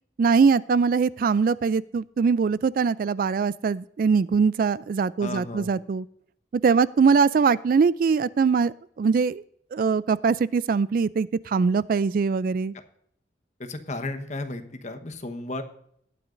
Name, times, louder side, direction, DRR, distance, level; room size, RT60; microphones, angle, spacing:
voice 1, 0.2-6.1 6.6-9.4 9.7-12.7, right 5 dB, 50° right, 18 dB, 0.3 m, -22 dB
voice 2, 5.2-5.7 13.6-15.6, left 2 dB, 40° left, 7 dB, 1.1 m, -34 dB
19.0 x 9.2 x 2.6 m, 0.68 s
head